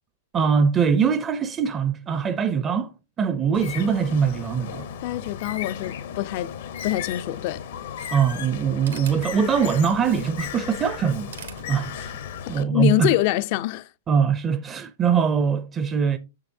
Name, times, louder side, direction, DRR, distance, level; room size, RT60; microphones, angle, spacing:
voice 1, 0.3-2.9 3.2-4.9 8.1-11.3 11.7-12.2 12.5-13.1 14.1-16.2, right 6 dB, 20° right, 0.5 m, -22 dB
Bird, 3.5-12.6, left 8 dB, 65° left, 0.8 m, -35 dB
voice 2, 5.0-6.5 6.8-7.6 12.6-13.9, left 16 dB, 50° left, 0.4 m, -25 dB
sound 1, 8.0-12.5, right 7 dB, 90° right, 1.6 m, -45 dB
7.5 x 6.9 x 2.6 m
hypercardioid pair, 130°, 0 cm